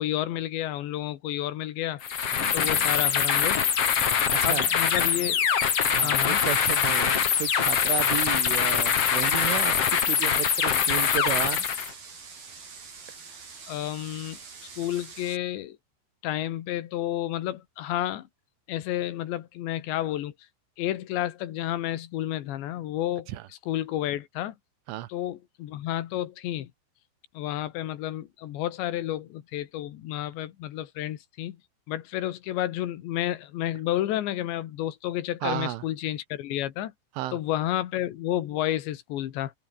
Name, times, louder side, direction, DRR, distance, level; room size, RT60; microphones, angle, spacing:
voice 1, 0.0-2.0 2.5-3.6 4.4-5.5 6.0-6.4 13.7-14.4 14.8-15.8 16.2-18.3 18.7-20.3 20.8-23.3 23.7-24.6 25.1-26.7 27.4-31.6 31.9-36.9 37.3-39.5, left 13 dB, 70° left, 3.7 m, -31 dB
sound 1, 2.0-11.9, left 7 dB, 45° left, 2.3 m, -24 dB
voice 2, 2.3-2.9 4.1-4.7 5.8-11.7 23.3-23.5 24.9-25.1 35.4-35.8 37.2-37.4, right 15 dB, 85° right, 3.7 m, -33 dB
sound 2, 6.4-15.4, right 5 dB, 50° right, 7.5 m, -45 dB
omnidirectional pair, 5.5 m